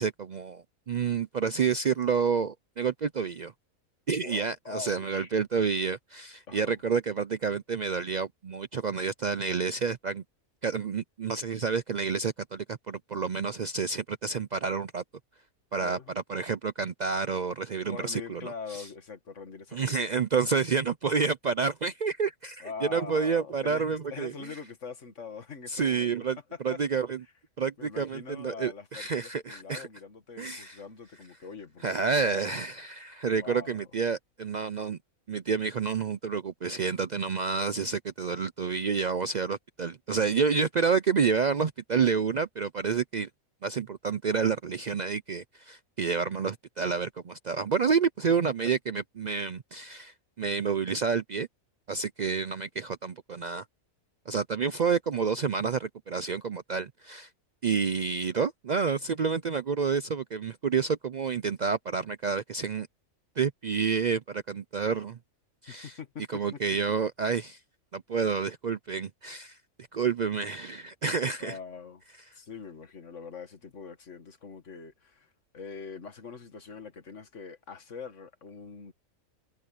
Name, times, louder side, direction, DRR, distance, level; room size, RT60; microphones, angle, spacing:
voice 1, 0.0-3.5 4.1-10.2 10.6-15.0 15.7-16.0 16.3-18.8 19.7-24.3 25.7-26.4 26.6-27.2 27.6-29.9 30.4-30.8 31.8-35.0 35.3-43.3 43.6-51.5 51.9-53.7 54.3-57.3 57.6-62.9 63.4-65.2 65.6-65.9 66.3-67.6 67.9-69.6 69.9-71.6, right 5 dB, 75° right, 0.4 m, -29 dB
voice 2, 4.2-5.3 6.5-6.8 15.8-16.1 17.9-19.9 22.6-26.1 26.5-26.8 27.8-32.6 33.4-33.9 52.2-52.5 65.7-66.6 71.4-72.0 72.3-78.9, left 5 dB, 55° left, 2.2 m, -43 dB
omnidirectional pair, 1.5 m